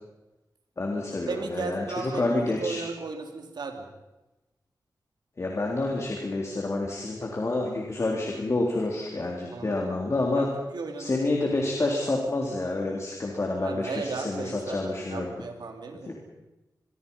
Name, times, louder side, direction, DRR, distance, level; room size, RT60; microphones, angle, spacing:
voice 1, 0.8-2.8 5.4-10.5 11.0-15.4 16.1-16.2, left 2 dB, 40° left, 0 dB, 3.6 m, -28 dB
voice 2, 1.3-3.9 9.5-9.9 10.3-11.5 13.6-16.1, right 4 dB, 85° right, 4 dB, 3.7 m, -36 dB
27.5 x 23.0 x 5.6 m, 1.0 s
wide cardioid pair, 125°, 7 cm